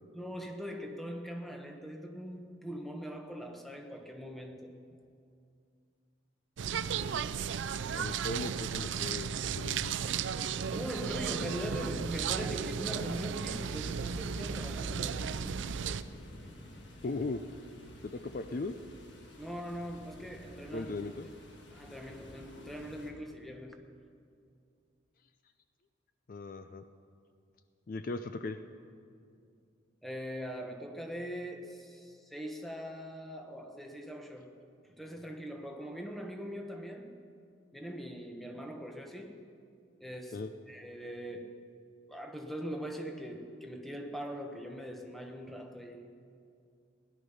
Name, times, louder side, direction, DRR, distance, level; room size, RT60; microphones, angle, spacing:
voice 1, 0.1-4.8 10.7-15.5 19.4-21.3 21.7-23.8 30.0-34.6 35.0-37.2 37.7-39.4 40.0-41.8 42.1-46.0, equal, ahead, 0.9 m, -41 dB
sound 1, 6.6-16.0, right 7 dB, 75° right, 0.4 m, -35 dB
voice 2, 7.9-10.0 17.0-17.4 18.0-18.7 20.7-21.3 26.3-26.8 27.9-28.6 40.3-40.5, left 3 dB, 45° left, 0.4 m, -38 dB
sound 2, 13.1-23.1, left 1 dB, 65° left, 1.6 m, -51 dB
17.0 x 11.0 x 5.5 m
head